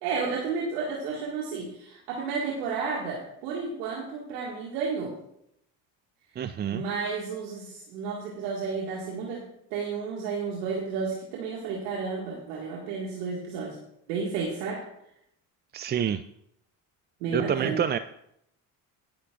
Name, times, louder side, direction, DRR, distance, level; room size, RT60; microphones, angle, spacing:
voice 1, 0.0-5.1 6.4-9.4 9.7-13.8 14.1-14.8 17.2-17.8, right 5 dB, 85° right, -4 dB, 2.0 m, -32 dB
voice 2, 6.4-6.8 15.7-16.2 17.3-18.0, right 8 dB, 25° right, 11 dB, 0.3 m, -27 dB
19.0 x 6.8 x 2.5 m, 0.76 s
hypercardioid pair, 65°, 47 cm